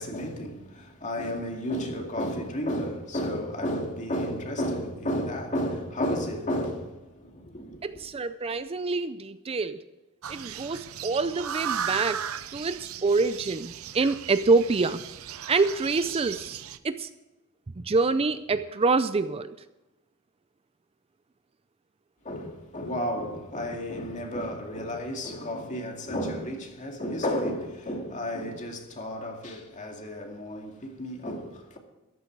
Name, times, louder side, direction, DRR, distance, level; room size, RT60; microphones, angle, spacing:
voice 1, 0.0-7.0 7.2-8.0 22.2-31.8, equal, 35° left, 2.3 m, -32 dB
voice 2, 7.8-9.8 10.3-12.2 12.5-15.0 15.5-16.6 16.8-17.1 17.9-19.5, right 3 dB, 25° right, 0.4 m, -26 dB
sound 1, 10.2-16.8, right 8 dB, 85° right, 0.7 m, -36 dB
14.0 x 12.5 x 4.6 m
head